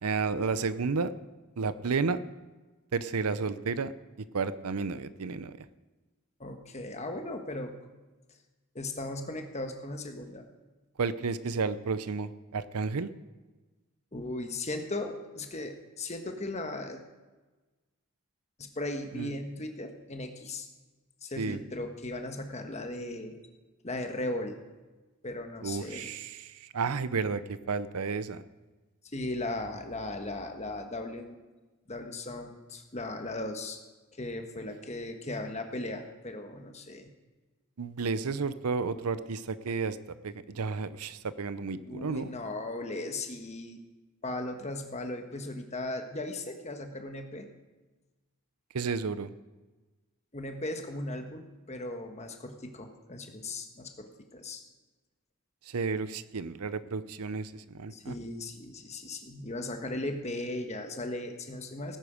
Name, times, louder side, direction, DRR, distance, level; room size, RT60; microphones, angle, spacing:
voice 1, 0.0-1.1 1.6-2.2 2.9-3.9 4.3-5.5 11.0-13.1 19.1-19.3 21.4-21.6 25.6-28.4 37.8-40.0 40.2-42.3 48.7-49.3 55.7-58.1, right 4 dB, 85° right, 14 dB, 0.6 m, -32 dB
voice 2, 6.4-7.7 8.7-10.4 14.1-17.0 18.6-20.7 21.2-23.4 23.8-24.6 25.2-26.1 29.1-31.4 31.9-33.8 34.1-37.1 41.8-43.8 44.2-47.5 50.3-54.6 57.9-62.0, left 2 dB, 30° left, 5 dB, 1.2 m, -37 dB
17.5 x 9.4 x 5.1 m, 1.2 s
head